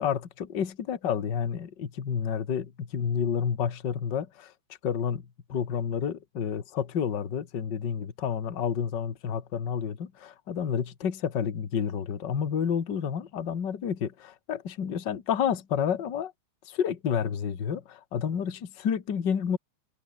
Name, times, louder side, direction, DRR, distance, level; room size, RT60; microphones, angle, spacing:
voice 1, 0.0-4.5 4.8-16.3 16.6-19.6, left 7 dB, 40° left, 1.6 m, -30 dB
omnidirectional pair, 4.8 m